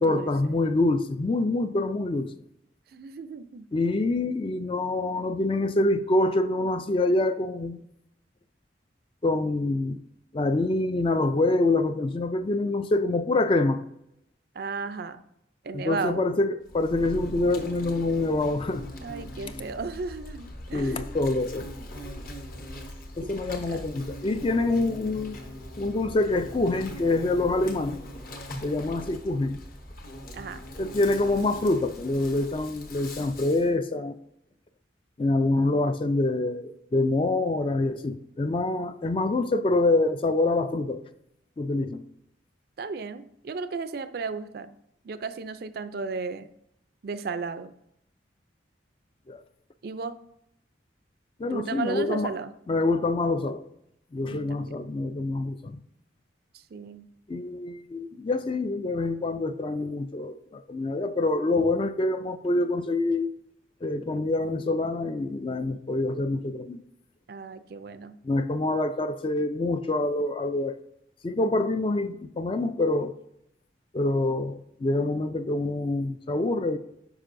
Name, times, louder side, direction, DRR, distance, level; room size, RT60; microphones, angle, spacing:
voice 1, 0.0-2.3 3.7-7.9 9.2-10.0 10.3-13.8 15.7-18.9 20.7-21.7 23.2-25.4 25.8-28.0 28.6-29.6 30.8-34.2 35.2-41.0 41.6-42.0 49.3-49.4 51.4-52.3 52.7-53.7 54.1-55.8 57.3-63.3 63.8-66.8 68.2-70.8 71.2-73.1 73.9-76.8, left 2 dB, 25° left, 0.3 m, -26 dB
voice 2, 2.9-3.7 14.6-15.2 15.6-16.3 19.0-21.0 23.2-23.8 30.3-30.6 42.8-44.7 45.0-46.5 47.0-47.7 49.8-50.2 51.5-52.5 54.3-54.7 56.7-57.1 67.3-68.2, right 4 dB, 55° right, 0.4 m, -34 dB
Insect, 16.7-33.7, equal, 50° left, 0.9 m, -41 dB
9.7 x 5.5 x 2.6 m
head